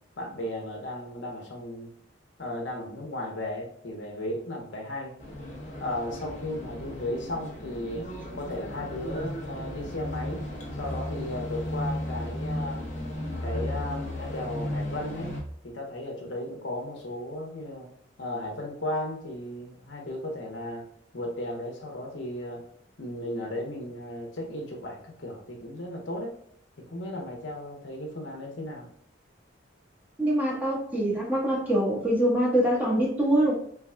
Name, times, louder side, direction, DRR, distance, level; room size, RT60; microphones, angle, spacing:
voice 1, 0.2-1.9 2.4-5.1 5.8-8.1 8.3-10.4 10.8-12.9 13.4-15.3 15.6-17.9 18.2-20.8 21.1-22.6 23.0-26.4 26.8-28.9, left 1 dB, 70° left, 0 dB, 1.0 m, -35 dB
sound 1, 5.2-15.4, left 1 dB, 40° left, 1.0 m, -35 dB
voice 2, 30.2-33.5, right 1 dB, 10° right, -5 dB, 1.2 m, -24 dB
4.6 x 3.4 x 2.3 m, 0.64 s
head